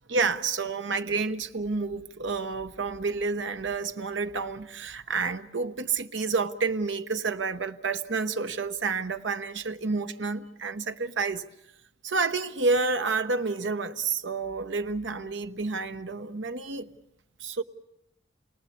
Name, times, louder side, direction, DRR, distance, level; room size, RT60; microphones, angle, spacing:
voice 1, 0.1-11.4 12.0-16.9 17.4-17.6, right 4 dB, 90° right, 0.9 m, -29 dB
29.0 x 19.0 x 8.4 m
head